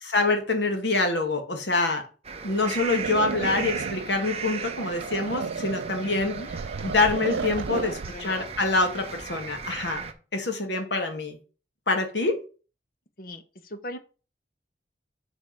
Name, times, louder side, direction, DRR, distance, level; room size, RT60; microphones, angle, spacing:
voice 1, 0.0-2.0 2.4-6.3 6.8-11.4 11.9-12.4, left 3 dB, 75° left, 1.6 m, -26 dB
sound 1, 2.2-10.1, right 5 dB, 35° right, 0.8 m, -37 dB
sound 2, 3.0-8.2, right 5 dB, 85° right, 0.5 m, -33 dB
voice 2, 6.0-6.5 7.7-8.6 9.7-9.9 13.2-14.0, left 1 dB, 50° left, 0.9 m, -40 dB
6.0 x 5.2 x 5.8 m
head